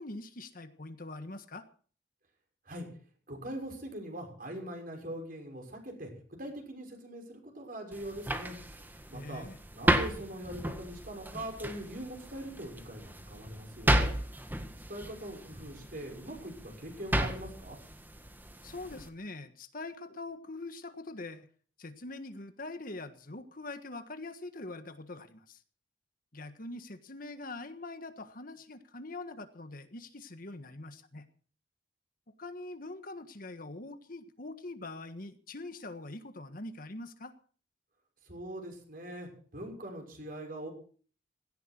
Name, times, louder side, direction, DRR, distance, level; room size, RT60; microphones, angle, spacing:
voice 1, 0.0-1.7 9.1-9.6 18.6-21.5 21.8-25.6 26.3-31.2 32.4-37.3, left 2 dB, 50° left, 9 dB, 1.5 m, -43 dB
voice 2, 3.3-6.1 6.4-9.4 9.7-14.1 14.9-17.8 38.2-40.7, right 1 dB, 50° right, 3 dB, 6.2 m, -42 dB
sound 1, 7.9-19.1, right 1 dB, 10° right, 1.7 m, -34 dB
17.5 x 16.0 x 4.5 m, 0.44 s
head